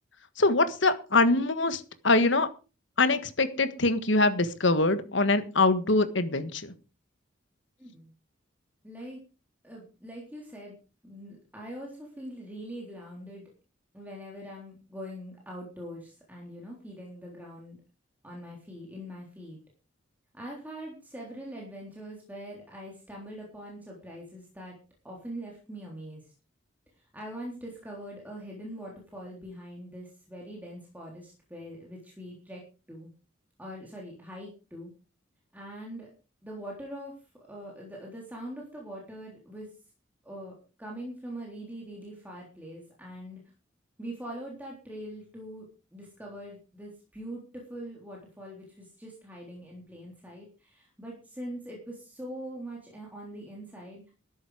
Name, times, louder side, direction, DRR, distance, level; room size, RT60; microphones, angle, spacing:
voice 1, 0.4-2.5 3.0-6.7, left 3 dB, 65° left, 11 dB, 1.6 m, -24 dB
voice 2, 7.8-8.1 8.8-9.2 9.6-10.8 11.0-13.5 13.9-17.8 18.2-19.6 20.3-24.8 25.0-26.2 27.0-32.6 32.9-33.1 33.6-34.9 35.5-36.1 36.4-37.1 37.5-39.7 40.2-43.4 44.0-54.0, equal, 10° right, -2 dB, 3.6 m, -42 dB
13.0 x 11.0 x 5.0 m, 0.34 s
head